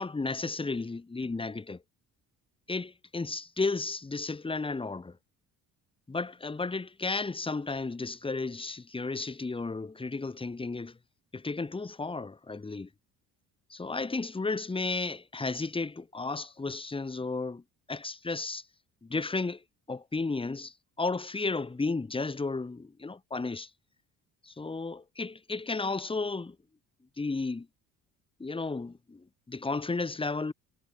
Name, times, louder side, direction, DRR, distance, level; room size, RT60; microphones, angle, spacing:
voice 1, 0.0-1.8 2.7-5.2 6.1-11.0 11.3-12.9 13.7-17.6 17.9-18.6 19.0-19.6 19.9-23.7 24.4-26.6 27.2-27.7 28.4-30.5, left 3 dB, 15° left, 1.0 m, -33 dB
supercardioid pair, 80°, 38 cm